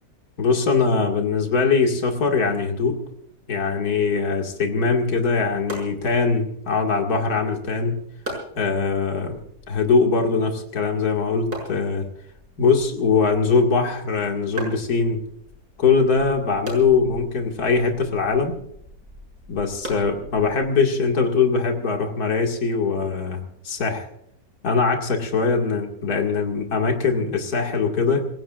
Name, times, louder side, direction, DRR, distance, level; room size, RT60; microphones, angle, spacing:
voice 1, 0.4-3.0 3.5-8.0 8.6-9.4 9.7-12.1 12.6-15.2 15.8-18.5 19.5-24.1 24.6-28.3, left 4 dB, 60° left, 1 dB, 2.7 m, -21 dB
sound 1, 5.6-20.8, right 1 dB, 65° right, 6.8 m, -41 dB
28.0 x 17.0 x 2.5 m, 0.73 s
omnidirectional pair, 1.8 m